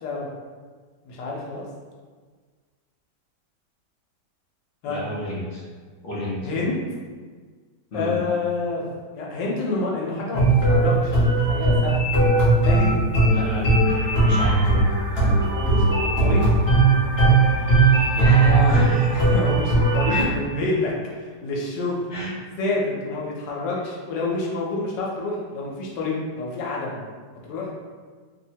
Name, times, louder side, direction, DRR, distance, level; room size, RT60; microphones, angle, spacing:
voice 1, 1.0-1.6 4.8-5.0 6.4-6.8 7.9-8.9 9.1-11.9 12.6-13.0 15.5-16.5 19.1-20.9 21.2-22.1 22.6-27.0 27.4-27.7, left 3 dB, 90° left, -3 dB, 1.3 m, -28 dB
voice 2, 4.8-5.6 6.0-6.4 7.9-8.2 13.3-13.9 14.2-14.8 15.1-15.4 18.2-19.1 20.1-20.3 22.1-22.3, equal, 65° left, -10 dB, 0.5 m, -29 dB
sound 1, 10.3-20.2, right 2 dB, 45° left, 0.9 m, -18 dB
sound 2, 13.8-20.2, right 2 dB, 60° right, 0.9 m, -37 dB
3.3 x 2.0 x 2.7 m, 1.5 s
omnidirectional pair, 1.9 m